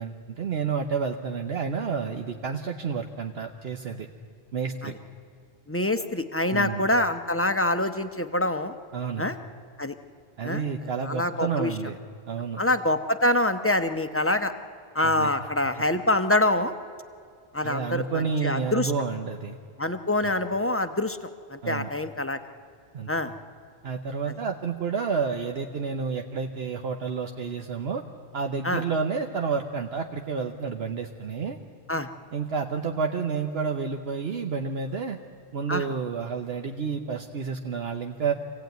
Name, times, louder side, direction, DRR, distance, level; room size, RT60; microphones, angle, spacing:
voice 1, 0.0-4.1 4.5-4.9 6.5-6.9 8.9-9.2 10.4-12.0 12.3-12.6 15.0-15.3 17.6-19.6 20.2-20.3 21.6-21.9 22.9-23.1 23.8-28.0 28.3-31.6 32.3-35.2 35.5-38.3, right 5 dB, 70° right, 4 dB, 1.1 m, -30 dB
voice 2, 5.7-8.7 9.2-9.4 9.8-9.9 10.4-10.6 11.0-11.7 12.6-14.5 14.9-16.7 17.5-18.9 19.8-21.2 21.5-22.4 23.1-23.3 28.6-28.8 31.9-32.1 35.7-35.8, left 1 dB, 15° left, 9 dB, 0.7 m, -25 dB
25.5 x 16.5 x 9.2 m, 2.3 s
omnidirectional pair, 1.1 m